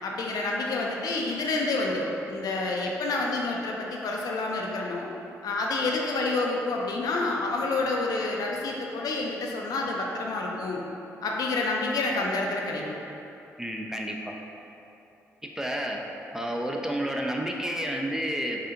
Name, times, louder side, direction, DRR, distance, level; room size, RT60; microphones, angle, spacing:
voice 1, 0.0-5.1 5.4-10.8 11.2-13.0, left 3 dB, 65° left, -1 dB, 0.4 m, -28 dB
voice 2, 13.6-14.3 15.4-16.0 16.3-18.6, equal, 5° right, 1 dB, 0.4 m, -30 dB
4.1 x 2.7 x 2.5 m, 2.9 s
hypercardioid pair, 45°, 7 cm